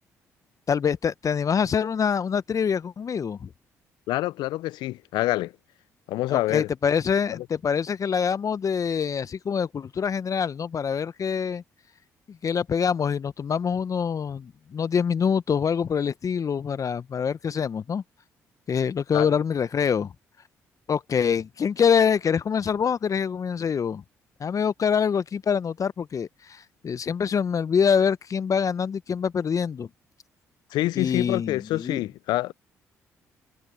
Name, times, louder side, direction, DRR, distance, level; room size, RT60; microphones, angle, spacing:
voice 1, 0.7-3.5 6.3-11.6 12.4-18.0 18.7-20.1 20.9-24.0 24.4-29.9 31.0-32.0, left 7 dB, 45° left, 1.0 m, -25 dB
voice 2, 4.1-5.5 6.1-6.7 7.3-7.5 19.1-19.3 30.7-32.5, left 16 dB, 70° left, 0.7 m, -26 dB
hypercardioid pair, 45°, 8 cm